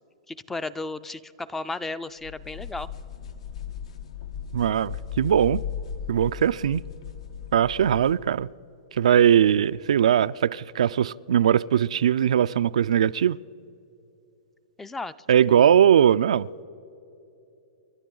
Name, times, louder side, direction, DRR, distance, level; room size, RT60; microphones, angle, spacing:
voice 1, 0.3-2.9 14.8-15.1 15.5-15.7, left 3 dB, 10° left, 0.4 m, -34 dB
sound 1, 2.2-8.2, left 8 dB, 75° left, 1.2 m, -37 dB
voice 2, 4.5-5.6 6.1-6.8 7.5-8.5 9.0-13.4 15.3-16.5, right 9 dB, 85° right, 0.3 m, -20 dB
30.0 x 12.0 x 3.9 m
hypercardioid pair, 145°, 3 cm